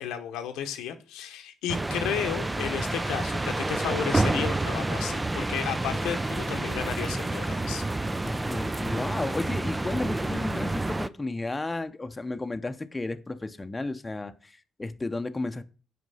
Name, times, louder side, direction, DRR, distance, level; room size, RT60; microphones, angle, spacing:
voice 1, 0.0-7.8, left 9 dB, 85° left, 0.9 m, -33 dB
sound 1, 1.7-11.1, right 2 dB, 15° right, 0.5 m, -29 dB
voice 2, 8.2-15.6, left 2 dB, 20° left, 0.8 m, -33 dB
8.0 x 5.1 x 5.6 m
supercardioid pair, 65°, 0 cm